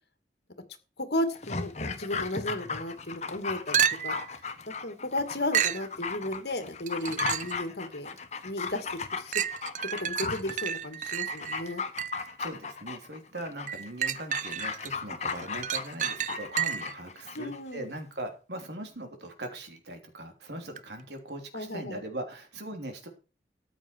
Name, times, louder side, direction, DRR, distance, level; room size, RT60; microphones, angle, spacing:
voice 1, 1.0-4.1 4.8-8.2 8.4-8.9 9.1-9.4 10.0-11.8 17.3-17.8 21.5-22.0, left 1 dB, 70° left, 8 dB, 2.3 m, -34 dB
Dog, 1.3-17.6 17.9-18.0, left 4 dB, 40° left, 1.4 m, -36 dB
sound 1, 3.7-4.3 5.5-5.9 6.9-7.6 8.2-8.3 9.3-12.3 13.7-14.9 15.3-17.0 20.8-20.9, right 9 dB, 45° right, 0.6 m, -31 dB
voice 2, 12.4-23.1, right 1 dB, 75° right, 5 dB, 3.4 m, -40 dB
14.0 x 9.2 x 4.6 m, 0.33 s
head